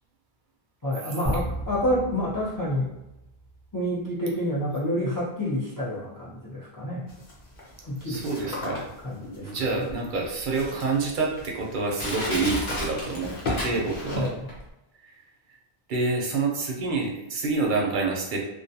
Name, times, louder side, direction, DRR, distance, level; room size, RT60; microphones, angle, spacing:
voice 1, 0.8-2.9 3.7-7.1 7.8-8.6 9.0-9.8 14.1-14.5, equal, 25° left, -7 dB, 0.4 m, -29 dB
sound 1, 1.2-3.8, equal, 5° right, 0.7 m, -34 dB
sound 2, 7.1-14.3, left 2 dB, 65° left, 0.9 m, -37 dB
voice 2, 8.0-8.9 9.4-14.3 15.1-15.2 15.9-18.4, right 3 dB, 60° right, 0 dB, 0.6 m, -27 dB
Crushing, 12.0-14.2 14.5-14.6, left 1 dB, 80° left, 1.2 m, -32 dB
2.4 x 2.2 x 2.7 m, 0.93 s
omnidirectional pair, 1.0 m